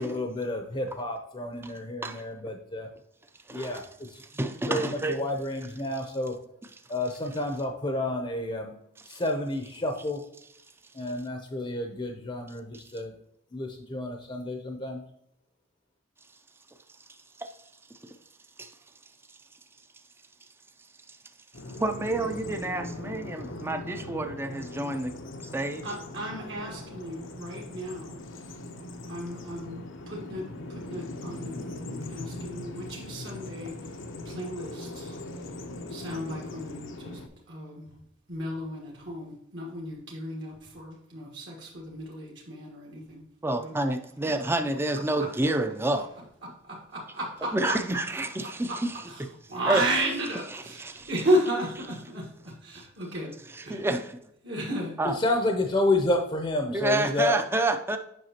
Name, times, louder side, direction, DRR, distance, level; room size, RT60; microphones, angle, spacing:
voice 1, 0.0-2.9 3.5-4.2 4.6-6.3 6.9-8.7 9.1-10.2 10.9-13.1 13.5-15.0 55.2-57.4, left 2 dB, 25° left, 3 dB, 0.6 m, -30 dB
voice 2, 3.5-3.8 4.2-5.2 9.1-9.2 12.7-12.8 17.4-17.6 18.0-18.1 18.6-18.7 21.1-21.2 21.8-25.1 25.5-25.8 43.4-46.1 47.5-49.0 49.7-49.8 50.5-51.1 53.5-54.2 55.0-55.2 56.7-58.0, right 2 dB, 10° right, 7 dB, 0.4 m, -29 dB
Bird vocalization bird call bird song, 21.5-37.3, left 2 dB, 80° left, 0.8 m, -40 dB
voice 3, 25.8-28.0 29.1-29.8 30.1-30.4 30.9-31.6 31.9-33.7 34.3-34.7 35.9-37.1 37.5-37.7 38.3-40.5 41.1-41.4 41.9-42.8 43.6-43.7 45.2-45.3 46.9-47.8 48.7-48.8 49.5-50.4 51.1-52.2 53.0-53.3 54.4-54.9, right 1 dB, 65° right, -2 dB, 1.5 m, -32 dB
7.8 x 5.7 x 2.9 m, 0.77 s
head